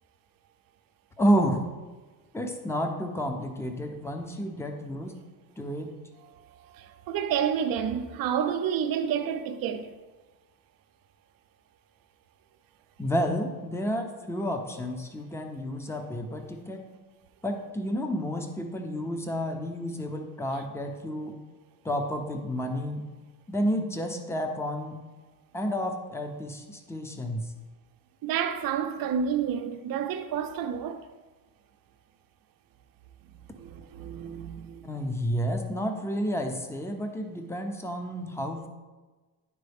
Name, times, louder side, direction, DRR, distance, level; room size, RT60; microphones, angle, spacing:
voice 1, 1.2-1.6 2.3-5.1 5.6-5.9 13.0-16.8 17.4-21.4 21.8-23.0 23.5-25.0 25.5-27.4 34.8-38.7, equal, 5° left, 0.9 m, -30 dB
voice 2, 6.7-9.9 28.2-31.0 33.6-34.8, right 8 dB, 65° right, 0.8 m, -29 dB
11.0 x 3.7 x 3.5 m
cardioid pair, 95°, 37 cm